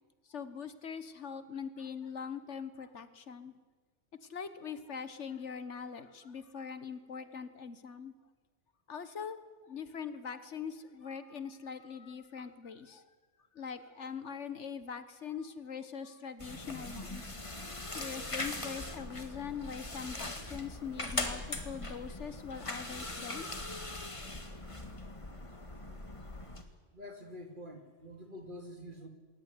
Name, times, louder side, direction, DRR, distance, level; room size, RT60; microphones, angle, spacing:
voice 1, 0.3-3.5 4.2-8.1 8.9-13.0 13.5-17.6 17.9-23.5, left 6 dB, 70° left, 12 dB, 1.6 m, -42 dB
sound 1, 16.4-26.6, left 2 dB, 25° left, 1.9 m, -41 dB
voice 2, 26.9-29.1, left 1 dB, 40° right, 5 dB, 2.8 m, -47 dB
21.0 x 18.5 x 9.7 m, 1.3 s
omnidirectional pair, 1.2 m